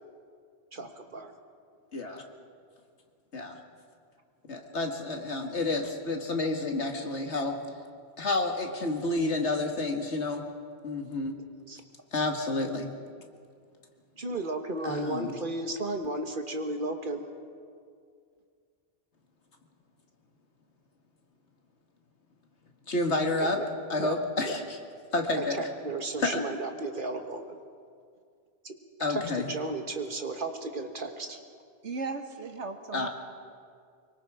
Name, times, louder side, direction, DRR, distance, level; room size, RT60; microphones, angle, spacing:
voice 1, 0.7-1.3 11.7-11.8 14.2-17.3 23.4-23.7 24.0-24.1 24.5-24.6 25.4-27.6 28.6-28.7 29.1-31.4, right 2 dB, 50° right, 5 dB, 1.7 m, -34 dB
voice 2, 1.9-2.2 3.3-3.6 4.5-7.6 8.2-10.4 10.8-11.4 12.1-12.9 14.8-15.4 22.9-23.6 23.9-24.6 25.1-25.6 26.2-26.4 29.0-29.5 32.9-33.1, left 2 dB, 80° left, 3 dB, 2.2 m, -29 dB
voice 3, 31.8-33.1, right 4 dB, 90° right, 6 dB, 1.7 m, -36 dB
24.5 x 23.5 x 5.0 m, 2.2 s
omnidirectional pair, 1.1 m